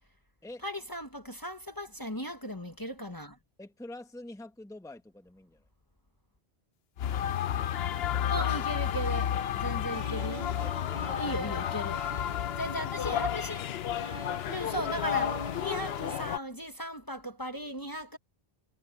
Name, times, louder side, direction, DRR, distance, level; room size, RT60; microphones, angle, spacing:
voice 1, 0.6-3.4 8.3-10.5 11.2-12.0 12.6-13.6 14.5-18.2, equal, 20° left, 1.3 m, -37 dB
voice 2, 3.6-5.6 8.0-8.5 10.5-11.9, left 1 dB, 5° left, 1.2 m, -47 dB
sound 1, 7.0-16.4, left 10 dB, 75° left, 0.9 m, -31 dB
sound 2, 9.9-16.2, right 1 dB, 30° right, 1.5 m, -44 dB
omnidirectional pair, 1.1 m